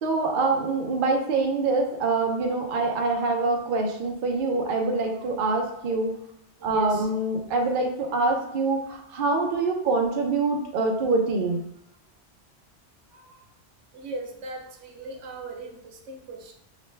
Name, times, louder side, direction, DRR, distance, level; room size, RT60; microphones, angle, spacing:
voice 1, 0.0-6.1 6.6-11.6, right 3 dB, 55° right, 2 dB, 0.8 m, -25 dB
voice 2, 6.6-7.1 13.9-16.5, right 2 dB, 85° right, 3 dB, 1.0 m, -38 dB
5.0 x 2.2 x 3.2 m, 0.78 s
omnidirectional pair, 1.2 m